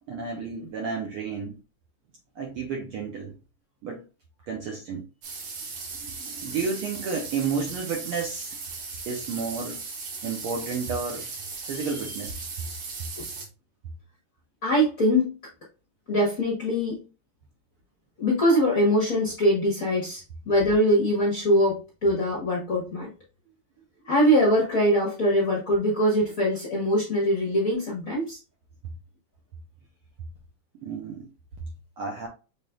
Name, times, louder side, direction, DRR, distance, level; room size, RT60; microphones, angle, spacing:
voice 1, 0.1-1.6 2.4-3.3 3.8-4.0 4.5-5.0 6.0-8.6 9.1-9.8 10.2-11.4 11.7-12.5 30.8-31.3 32.0-32.3, right 5 dB, 80° right, 1.2 m, -31 dB
sound 1, 5.2-13.5, right 4 dB, 60° right, 2.2 m, -37 dB
voice 2, 14.6-15.3 16.1-17.0 18.2-23.1 24.1-28.4, equal, 65° left, 0.8 m, -23 dB
6.4 x 3.5 x 2.3 m
omnidirectional pair, 3.4 m